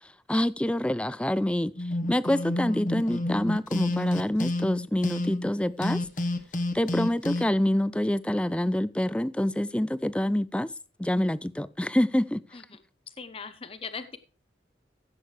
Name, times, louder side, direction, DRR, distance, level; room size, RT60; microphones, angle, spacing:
voice 1, 0.3-1.7 2.1-6.0 6.7-10.7 11.0-12.4, left 1 dB, 5° left, 0.4 m, -26 dB
sound 1, 1.8-5.5 5.8-7.5, left 1 dB, 45° left, 1.3 m, -29 dB
voice 2, 13.1-14.2, left 5 dB, 30° left, 0.8 m, -40 dB
15.5 x 8.5 x 3.3 m
head